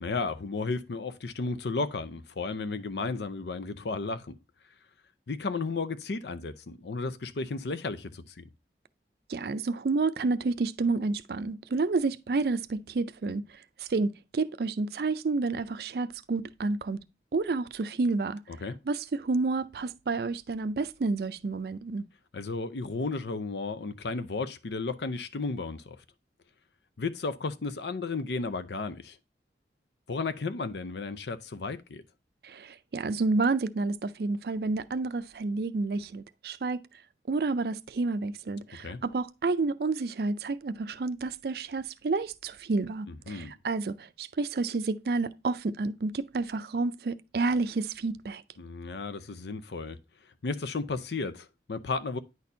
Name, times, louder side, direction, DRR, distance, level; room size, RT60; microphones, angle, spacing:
voice 1, 0.0-4.4 5.3-8.4 18.5-18.8 22.3-26.0 27.0-29.2 30.1-32.0 38.8-39.0 43.1-43.5 48.6-50.0 50.4-52.2, left 3 dB, 75° left, 0.6 m, -33 dB
voice 2, 9.3-13.4 13.8-17.0 17.3-18.4 18.9-22.1 32.4-36.8 37.3-48.4, right 3 dB, 60° right, 0.4 m, -30 dB
9.5 x 4.3 x 2.6 m
head